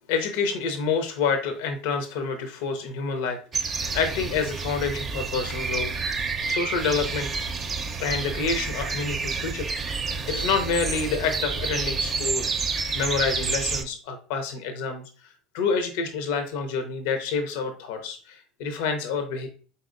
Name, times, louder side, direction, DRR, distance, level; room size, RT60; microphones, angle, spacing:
voice 1, 0.1-5.9 6.5-7.3 8.0-12.5 12.9-15.0 15.5-19.5, left 5 dB, 65° left, 7 dB, 0.6 m, -28 dB
sound 1, 3.5-13.8, right 4 dB, 35° right, 0.6 m, -29 dB
4.2 x 4.0 x 2.5 m, 0.39 s
hypercardioid pair, 70°, 0 cm